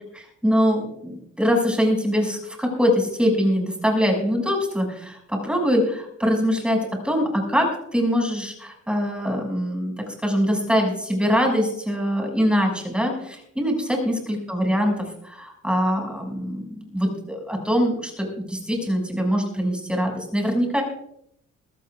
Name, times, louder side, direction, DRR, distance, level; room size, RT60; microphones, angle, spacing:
voice 1, 0.1-6.8 7.0-7.7 7.9-20.8, equal, 5° right, 1 dB, 6.2 m, -23 dB
22.5 x 14.5 x 2.4 m, 0.71 s
cardioid pair, 90°, 30 cm